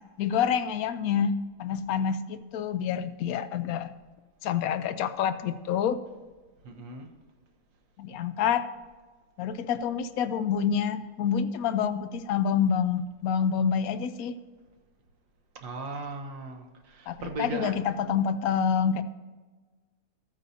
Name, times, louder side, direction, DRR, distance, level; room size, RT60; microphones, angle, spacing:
voice 1, 0.2-3.9 4.4-6.0 8.0-8.7 9.4-14.3 17.1-19.0, left 7 dB, 70° left, 11 dB, 1.0 m, -27 dB
voice 2, 6.6-7.1 15.6-17.9, right 3 dB, 60° right, 3 dB, 1.4 m, -37 dB
13.0 x 9.0 x 2.7 m, 1.3 s
omnidirectional pair, 1.7 m